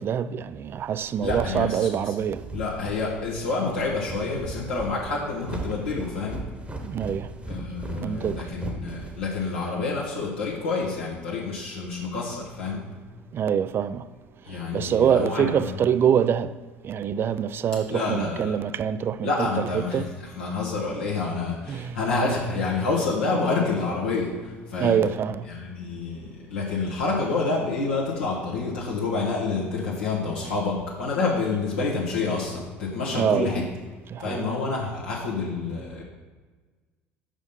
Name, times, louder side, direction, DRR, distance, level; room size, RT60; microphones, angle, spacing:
voice 1, 0.0-2.4 6.8-7.3 8.0-8.4 13.3-14.0 14.7-16.5 16.8-20.1 21.7-22.0 24.8-25.4 33.1-33.5 34.1-34.5, right 8 dB, 35° right, 0.3 m, -25 dB
sound 1, 0.8-9.7, right 2 dB, 20° right, 1.1 m, -37 dB
voice 2, 1.2-2.1 2.5-6.4 7.5-12.9 14.5-15.9 17.9-18.6 19.2-20.0 20.3-25.0 25.5-33.7 34.2-36.0, left 3 dB, 75° left, 1.2 m, -28 dB
5.5 x 5.0 x 5.3 m
figure-of-eight pair, 60°, 6 cm